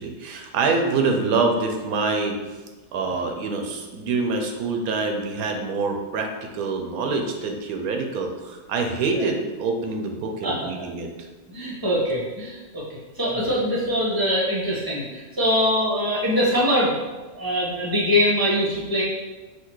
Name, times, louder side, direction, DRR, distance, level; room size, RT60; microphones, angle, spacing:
voice 1, 0.0-2.6 2.9-11.1, right 4 dB, 85° right, 3 dB, 1.1 m, -25 dB
voice 2, 11.5-12.8 13.1-17.0 17.3-19.0, equal, 15° right, -6 dB, 1.2 m, -23 dB
5.8 x 2.8 x 3.1 m, 1.2 s
omnidirectional pair, 1.5 m